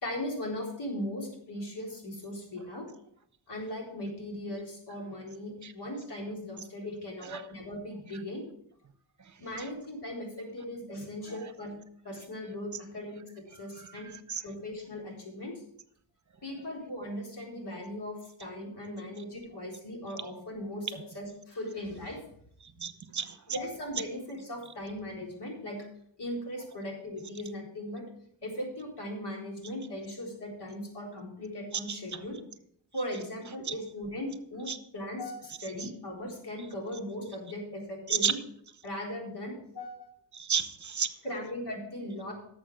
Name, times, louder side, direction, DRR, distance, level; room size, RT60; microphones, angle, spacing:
voice 1, 0.0-2.9 3.5-8.4 9.4-11.7 12.0-13.2 13.6-14.1 14.4-15.5 16.4-18.1 18.4-22.2 23.5-25.8 26.2-28.0 28.4-32.4 32.9-34.7 34.9-38.4 38.8-40.1 41.2-42.3, left 1 dB, 65° left, -1 dB, 4.1 m, -38 dB
voice 2, 22.8-23.6 31.9-32.2 33.6-33.7 34.7-34.8 35.8-35.9 38.1-38.3 40.3-41.1, right 6 dB, 40° right, 12 dB, 1.0 m, -32 dB
11.5 x 7.2 x 4.9 m, 0.68 s
cardioid pair, 80°, 44 cm